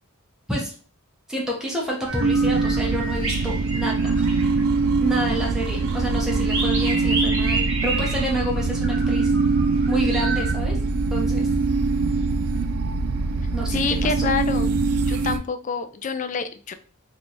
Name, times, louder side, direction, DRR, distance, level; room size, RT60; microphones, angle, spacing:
voice 1, 1.3-4.2 5.0-9.3 9.9-10.8 11.1-11.5 13.5-14.3, right 1 dB, 5° right, -3 dB, 0.8 m, -28 dB
sound 1, 2.1-10.5, right 2 dB, 60° right, 1.0 m, -32 dB
sound 2, 2.2-15.4, right 3 dB, 90° right, 0.4 m, -23 dB
voice 2, 13.7-14.7 15.1-16.7, left 5 dB, 35° left, 9 dB, 0.3 m, -27 dB
3.0 x 2.3 x 4.0 m, 0.40 s
head